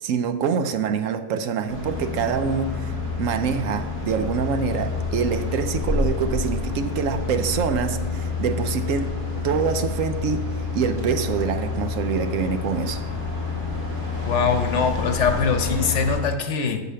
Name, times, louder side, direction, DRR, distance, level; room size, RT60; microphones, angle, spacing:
voice 1, 0.0-2.9 3.2-9.1 9.4-13.1, right 6 dB, 75° right, 9 dB, 1.0 m, -25 dB
sound 1, 1.7-16.2, left 4 dB, 35° right, 2.1 m, -28 dB
voice 2, 14.3-16.8, left 5 dB, 60° left, 6 dB, 1.1 m, -22 dB
8.1 x 6.2 x 5.6 m, 1.3 s
omnidirectional pair, 1.4 m